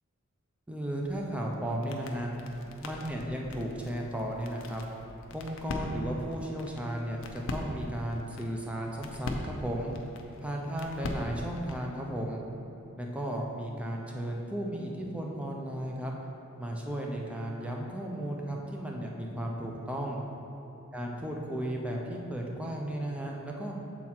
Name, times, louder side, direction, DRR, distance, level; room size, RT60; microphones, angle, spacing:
voice 1, 0.7-2.3 2.8-4.8 5.3-9.9 10.4-12.4 13.0-16.1 16.6-20.2 20.9-23.8, right 1 dB, 5° right, -1 dB, 0.6 m, -35 dB
sound 1, 1.0-11.9, left 2 dB, 65° left, 0.6 m, -41 dB
7.3 x 4.1 x 4.3 m, 2.9 s
head